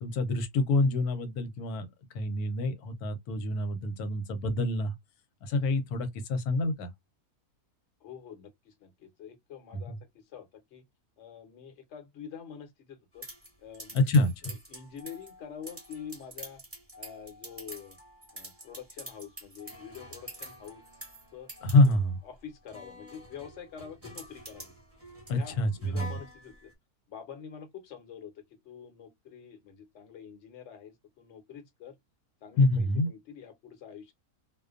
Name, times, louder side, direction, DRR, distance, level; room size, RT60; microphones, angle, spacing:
voice 1, 0.0-1.9 2.1-4.9 5.4-6.9 9.9-10.0 13.9-14.5 21.6-22.2 25.3-26.1 32.6-33.1, left 2 dB, 80° left, 1.1 m, -26 dB
voice 2, 8.0-10.8 11.2-13.3 13.6-16.6 17.0-18.0 18.3-20.8 21.3-21.5 21.8-21.9 22.2-24.7 25.3-26.7 27.1-28.3 28.6-32.0 32.4-34.1, left 8 dB, 55° left, 1.0 m, -46 dB
sound 1, 13.2-26.7, equal, 10° right, 0.9 m, -47 dB
2.5 x 2.2 x 2.4 m
omnidirectional pair, 1.6 m